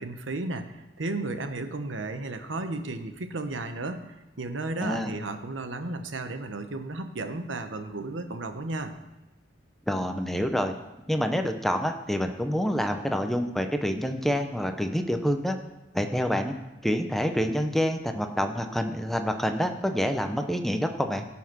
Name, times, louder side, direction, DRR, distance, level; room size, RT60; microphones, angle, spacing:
voice 1, 0.0-8.9, right 2 dB, 85° right, 8 dB, 1.0 m, -34 dB
voice 2, 4.8-5.1 9.9-10.7 11.1-15.6 15.9-16.5 16.8-21.3, equal, ahead, 6 dB, 0.7 m, -27 dB
16.0 x 5.8 x 6.1 m, 1.0 s
head